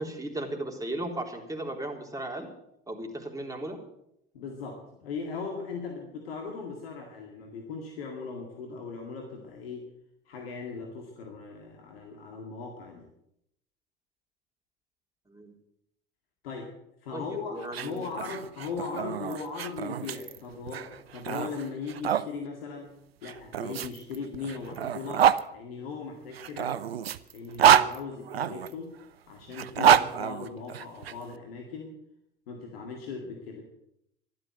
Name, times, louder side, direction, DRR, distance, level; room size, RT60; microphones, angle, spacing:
voice 1, 0.0-2.5 2.9-3.8 15.3-15.5 17.1-18.1, right 1 dB, 10° right, 2 dB, 3.7 m, -36 dB
voice 2, 4.3-9.8 10.3-13.1 16.4-16.7 17.0-22.9 23.2-26.8 27.3-29.0 29.3-31.9 32.5-33.6, left 4 dB, 80° left, 1 dB, 2.1 m, -38 dB
sound 1, 17.6-22.3 23.2-25.4 26.3-28.7 29.5-31.1, right 9 dB, 90° right, 0.6 m, -26 dB
12.5 x 12.0 x 7.8 m, 0.78 s
hypercardioid pair, 65°, 29 cm